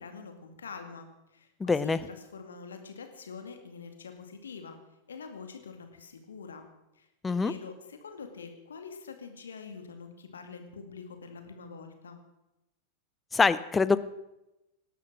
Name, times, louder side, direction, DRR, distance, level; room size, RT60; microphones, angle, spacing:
voice 1, 0.0-4.8 5.1-6.6 6.9-12.2, left 5 dB, 70° left, 6 dB, 2.3 m, -45 dB
voice 2, 1.6-2.0 7.2-7.5 13.3-14.0, left 4 dB, 15° left, 16 dB, 0.7 m, -24 dB
18.5 x 12.0 x 6.1 m, 0.93 s
figure-of-eight pair, 90°, 0 cm